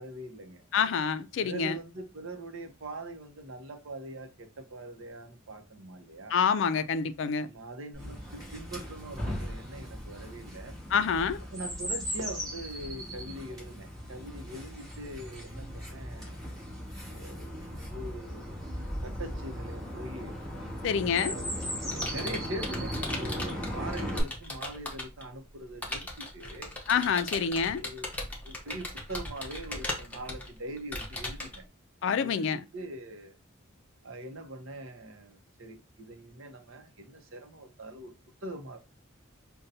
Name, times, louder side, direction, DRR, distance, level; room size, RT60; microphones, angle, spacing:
voice 1, 0.0-0.6 1.4-6.4 7.4-10.7 11.5-16.4 17.1-17.6 17.9-18.6 19.0-20.3 21.1-26.7 27.8-28.1 28.4-31.7 32.1-33.4 34.0-38.1 38.4-38.8, right 1 dB, 70° right, 0.7 m, -42 dB
voice 2, 0.7-1.8 6.3-7.5 10.9-11.4 20.8-21.3 26.9-27.8 32.0-32.6, left 6 dB, 60° left, 0.3 m, -27 dB
Chirp tweet, 7.9-24.2, equal, 20° right, 2.1 m, -38 dB
Computer keyboard, 21.4-25.2 25.8-31.6, left 1 dB, 5° left, 0.7 m, -38 dB
5.3 x 2.2 x 2.6 m
head